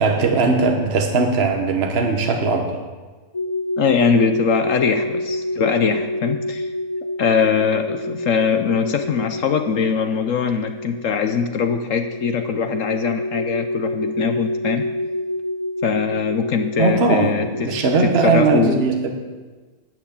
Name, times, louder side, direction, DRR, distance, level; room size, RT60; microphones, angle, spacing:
voice 1, 0.0-2.8 16.8-19.1, right 4 dB, 40° right, 3 dB, 1.4 m, -19 dB
sound 1, 3.3-18.4, left 1 dB, 30° left, 0.5 m, -28 dB
voice 2, 3.8-6.7 7.2-14.9 15.8-17.7 18.0-18.8, left 6 dB, 60° left, 7 dB, 0.9 m, -21 dB
12.5 x 6.1 x 8.6 m, 1.3 s
omnidirectional pair, 1.8 m